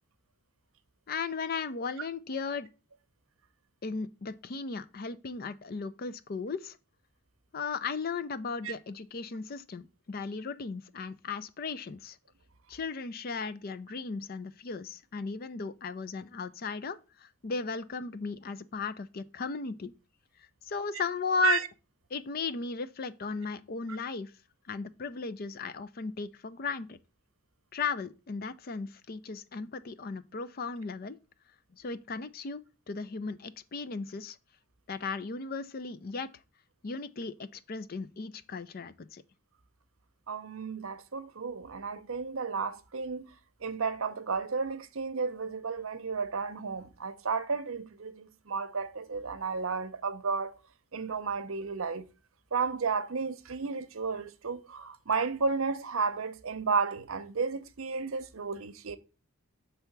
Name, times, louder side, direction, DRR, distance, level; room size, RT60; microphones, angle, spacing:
voice 1, 1.1-2.7 3.8-6.8 7.5-12.2 12.7-19.9 20.4-21.6 22.1-24.3 24.7-27.0 27.7-31.2 31.7-32.6 32.9-34.4 34.9-36.3 36.8-39.2, left 4 dB, 45° left, 0.4 m, -36 dB
voice 2, 40.3-43.3 43.6-50.6 50.9-52.0 52.5-59.0, right 5 dB, 70° right, 0.7 m, -32 dB
6.6 x 3.4 x 5.9 m
head